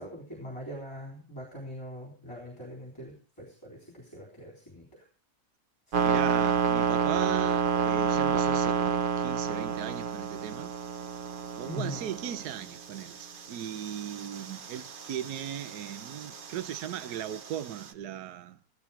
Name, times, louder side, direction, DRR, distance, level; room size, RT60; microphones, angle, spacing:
voice 1, 0.0-5.0 5.9-6.1 11.7-12.1, equal, 15° left, 3.8 m, -42 dB
sound 1, 5.9-17.9, right 6 dB, 50° right, 0.6 m, -30 dB
voice 2, 6.0-10.7 11.6-18.6, right 10 dB, 70° right, 1.3 m, -38 dB
15.0 x 12.5 x 4.3 m
omnidirectional pair, 1.8 m